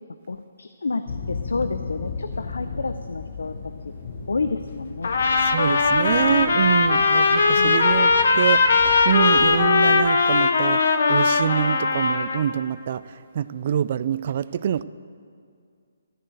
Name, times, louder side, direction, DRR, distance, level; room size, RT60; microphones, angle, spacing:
voice 1, 0.3-3.5 4.3-5.1 7.6-7.8, left 3 dB, 90° left, 9 dB, 0.6 m, -29 dB
sound 1, 1.1-10.1, left 5 dB, 45° left, 1.1 m, -36 dB
Trumpet, 5.0-12.4, left 4 dB, 65° left, 1.1 m, -19 dB
voice 2, 5.4-8.6 9.0-10.8 11.1-13.0 13.3-14.8, right 9 dB, 45° right, 17 dB, 0.3 m, -25 dB
13.5 x 7.7 x 7.8 m, 2.2 s
hypercardioid pair, 160°, 0 cm